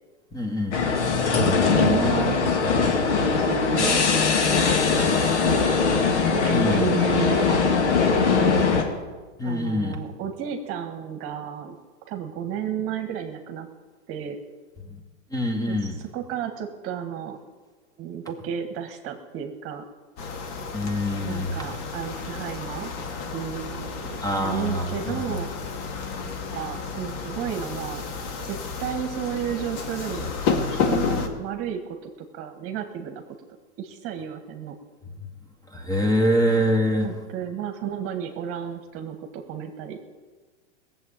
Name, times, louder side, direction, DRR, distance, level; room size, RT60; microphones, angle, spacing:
voice 1, 0.3-0.8 6.5-7.0 9.4-10.0 14.8-15.0 15.3-16.0 20.7-21.6 24.2-25.3 35.7-37.1, equal, 10° left, 3 dB, 2.3 m, -25 dB
sound 1, 0.7-8.8, left 5 dB, 75° left, 2.5 m, -21 dB
voice 2, 1.5-2.9 3.2-4.2 4.5-4.7 5.2-5.7 6.3-7.9 8.2-8.8 9.4-11.7 12.1-13.7 14.1-14.4 15.7-15.8 16.1-17.4 18.0-19.8 21.2-22.9 23.2-25.5 26.2-28.0 28.4-33.2 33.8-34.7 37.0-40.0, right 8 dB, 40° right, 6 dB, 1.6 m, -32 dB
sound 2, 20.2-31.3, left 5 dB, 45° left, 2.1 m, -31 dB
17.5 x 7.6 x 8.9 m, 1.3 s
hypercardioid pair, 115°, 35 cm